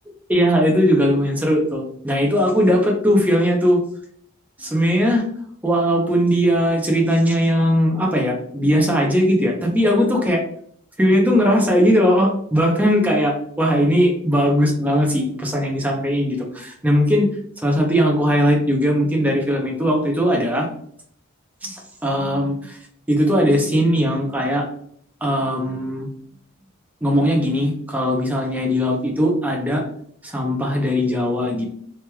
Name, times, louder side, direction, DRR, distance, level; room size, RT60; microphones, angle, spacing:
voice 1, 0.3-3.8 4.6-5.3 5.6-10.4 11.0-17.3 17.6-20.7 21.6-22.8 23.1-24.6 25.2-26.1 27.0-29.8 30.2-31.7, equal, 5° right, 0 dB, 0.6 m, -19 dB
3.2 x 3.0 x 2.2 m, 0.64 s
head